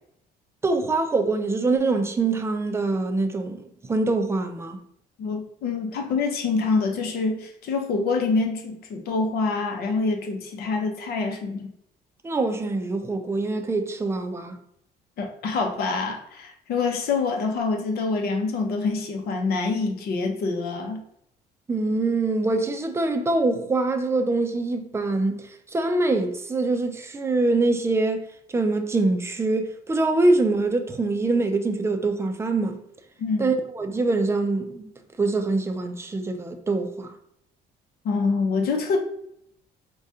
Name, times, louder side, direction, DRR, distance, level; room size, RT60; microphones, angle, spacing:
voice 1, 0.6-3.6 3.9-4.8 12.2-14.6 21.7-25.4 25.7-28.2 28.5-32.8 33.4-34.9 35.2-37.1, right 3 dB, 15° right, 0.4 m, -24 dB
voice 2, 5.2-11.7 15.2-21.0 33.2-33.5 38.0-39.0, left 4 dB, 65° left, 0.7 m, -26 dB
4.8 x 2.2 x 2.7 m
cardioid pair, 110°, 17 cm